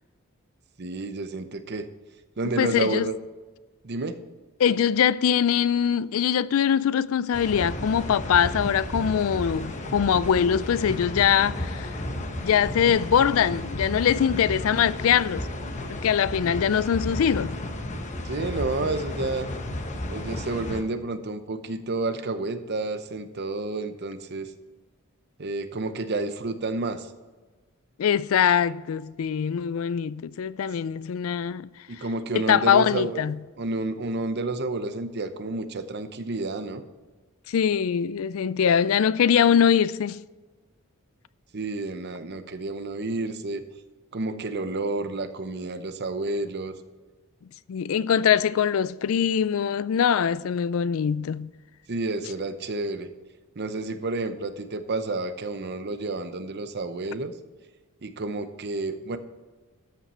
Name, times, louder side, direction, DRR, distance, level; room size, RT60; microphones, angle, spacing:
voice 1, 0.8-1.9 2.4-3.2 3.8-4.2 18.2-19.5 20.1-24.5 25.4-27.1 31.9-33.2 33.6-36.8 41.5-43.6 44.1-46.7 51.9-53.1 53.6-57.3 58.0-59.2, right 2 dB, 50° right, 0.7 m, -30 dB
voice 2, 2.6-3.1 4.6-12.0 12.4-15.5 15.9-17.6 28.0-31.7 32.3-33.4 37.5-40.2 47.7-51.5, left 8 dB, 70° left, 0.4 m, -22 dB
sound 1, 7.3-20.8, left 1 dB, 35° left, 0.9 m, -33 dB
13.0 x 5.7 x 4.3 m
head